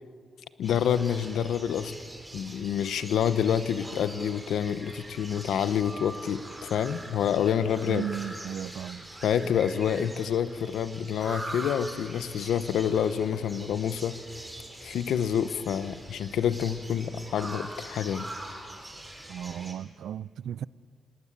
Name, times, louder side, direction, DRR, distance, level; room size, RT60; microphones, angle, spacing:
voice 1, 0.6-1.9 2.3-8.1 9.2-14.2 14.8-18.3, left 8 dB, 90° left, 0.9 m, -27 dB
sound 1, 0.6-19.7, right 1 dB, 10° right, 3.4 m, -43 dB
voice 2, 7.9-9.1 19.3-20.6, right 9 dB, 80° right, 0.4 m, -35 dB
20.0 x 19.0 x 8.5 m
cardioid pair, 115°, 0 cm